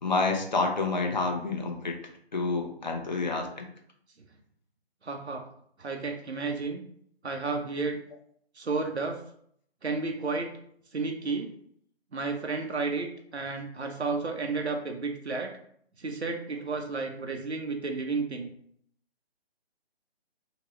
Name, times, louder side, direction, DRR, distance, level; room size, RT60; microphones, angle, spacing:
voice 1, 0.0-2.0 2.3-3.7, left 3 dB, 45° left, 2 dB, 0.6 m, -28 dB
voice 2, 5.0-5.4 5.8-6.8 7.2-8.0 8.6-9.2 9.8-10.5 10.9-11.5 12.1-15.5 16.0-18.5, right 4 dB, 85° right, 3 dB, 0.7 m, -32 dB
3.0 x 2.8 x 3.1 m, 0.65 s
figure-of-eight pair, 150°, 32 cm